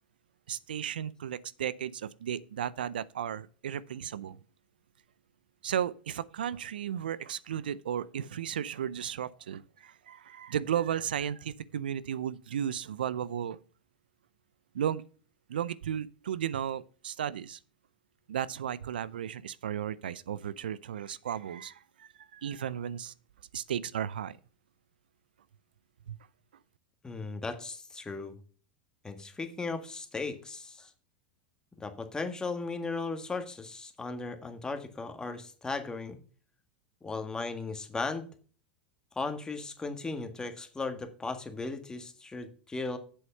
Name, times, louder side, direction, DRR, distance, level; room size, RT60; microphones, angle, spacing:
voice 1, 0.5-4.4 5.6-13.6 14.7-15.0 15.5-17.6 18.3-23.1 23.5-24.4 26.1-26.2, right 9 dB, 85° right, 0.5 m, -34 dB
voice 2, 27.0-28.4 29.0-30.9 31.8-36.2 37.0-38.3 39.1-43.0, left 3 dB, 15° left, 1.6 m, -36 dB
7.9 x 6.3 x 5.4 m
hypercardioid pair, 100°, 5 cm